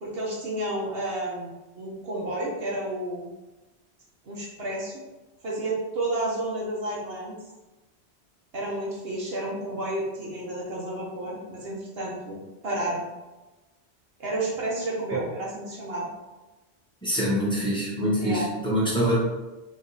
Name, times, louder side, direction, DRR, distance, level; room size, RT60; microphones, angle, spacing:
voice 1, 0.0-3.3 4.2-5.0 5.4-7.4 8.5-13.0 14.2-16.1 18.2-18.5, right 1 dB, 65° right, -4 dB, 1.2 m, -31 dB
voice 2, 17.0-19.2, equal, 5° left, -7 dB, 1.2 m, -25 dB
3.6 x 3.1 x 4.0 m, 1.1 s
omnidirectional pair, 1.1 m